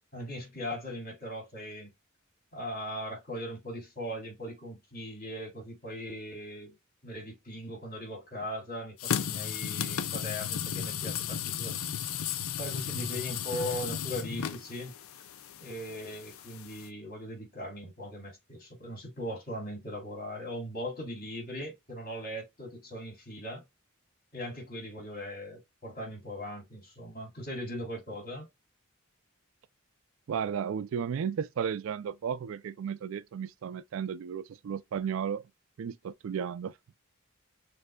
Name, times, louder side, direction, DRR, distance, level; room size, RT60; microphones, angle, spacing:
voice 1, 0.1-1.9 2.5-6.8 7.0-11.8 12.6-14.9 15.6-23.6 24.3-28.5, equal, 45° left, 3.2 m, -39 dB
sound 1, 9.0-16.9, left 9 dB, 85° left, 0.5 m, -35 dB
voice 2, 30.3-35.5 35.8-36.7, right 7 dB, 70° right, 0.3 m, -34 dB
6.5 x 2.6 x 2.2 m
head